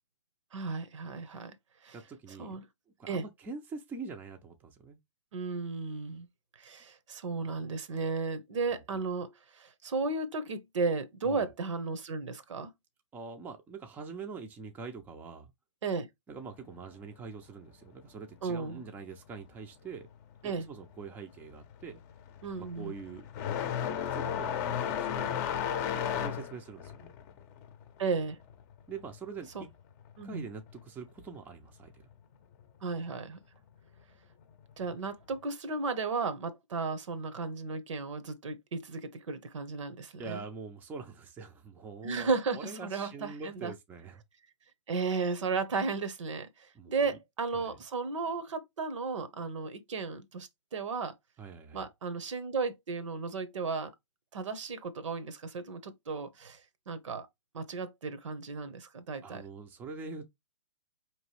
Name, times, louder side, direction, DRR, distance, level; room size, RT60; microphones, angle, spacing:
voice 1, 0.5-1.5 1.8-2.0 2.4-2.7 3.1-3.2 5.3-6.3 6.6-12.7 15.8-16.1 18.4-18.8 20.4-20.6 22.4-22.9 28.0-28.4 29.5-29.6 30.2-30.5 32.8-33.4 34.8-40.4 42.0-43.7 44.9-51.1 51.7-53.9 54.3-56.6 56.9-57.3 57.5-59.4, right 4 dB, 70° right, 0.9 m, -34 dB
voice 2, 1.9-2.6 3.0-5.0 8.7-8.8 11.2-11.5 13.1-15.5 16.3-20.1 20.4-22.0 22.7-23.3 23.8-27.1 28.9-29.7 30.2-32.0 40.2-44.2 46.7-47.0 47.5-47.8 51.4-51.8 59.2-60.3, right 4 dB, 10° right, 0.5 m, -44 dB
sound 1, 20.8-21.1 21.4-29.7 30.0-31.0 32.0-32.1 32.9-33.0 34.8-34.9, left 9 dB, 35° left, 0.7 m, -34 dB
4.5 x 3.0 x 3.0 m
hypercardioid pair, 140°, 16 cm